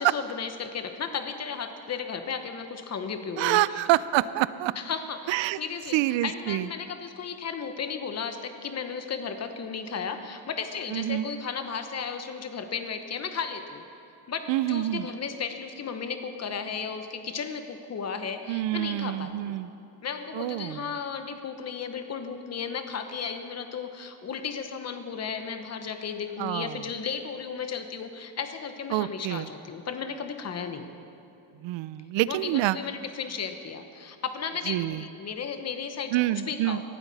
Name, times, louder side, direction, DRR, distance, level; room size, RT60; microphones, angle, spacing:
voice 1, 0.0-3.6 4.7-13.8 14.3-19.5 20.0-30.9 32.3-36.8, left 6 dB, 35° left, 8 dB, 1.0 m, -34 dB
voice 2, 3.4-4.7 5.3-5.6 5.9-6.7 10.9-11.3 14.5-15.1 18.5-19.7 20.3-20.9 26.4-26.9 28.9-29.5 31.6-32.8 34.7-35.0 36.1-36.8, right 15 dB, 85° right, 17 dB, 0.5 m, -27 dB
18.0 x 12.0 x 4.1 m, 2.9 s
cardioid pair, 140°, 44 cm